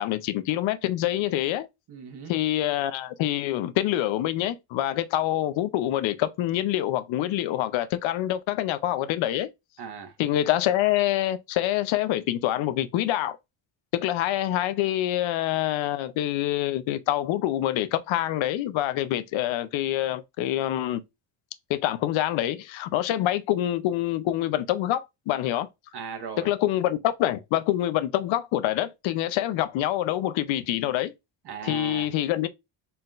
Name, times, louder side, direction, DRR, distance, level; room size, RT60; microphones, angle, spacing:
voice 1, 0.0-1.7 2.3-9.5 10.2-13.4 13.9-21.0 21.7-25.7 26.4-31.1 31.6-32.5, left 13 dB, 80° left, 0.7 m, -26 dB
voice 2, 1.9-2.3 9.8-10.1 25.9-26.5 31.4-32.1, right 6 dB, 60° right, 1.4 m, -37 dB
4.2 x 3.8 x 2.4 m
cardioid pair, 105°, 45 cm